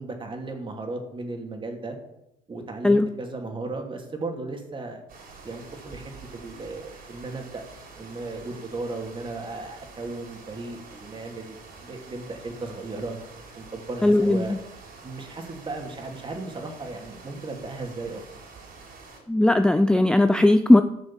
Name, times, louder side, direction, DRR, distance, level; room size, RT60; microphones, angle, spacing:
voice 1, 0.0-2.0 2.5-5.0 5.4-7.6 8.0-13.2 13.5-14.6 15.0-18.2, right 3 dB, 30° right, 3 dB, 2.8 m, -35 dB
sound 1, 5.1-19.2, right 4 dB, 60° right, 4.3 m, -47 dB
voice 2, 14.0-14.6 19.3-20.8, left 1 dB, 5° left, 9 dB, 0.5 m, -18 dB
14.5 x 6.3 x 7.5 m, 0.86 s
cardioid pair, 110°, 17 cm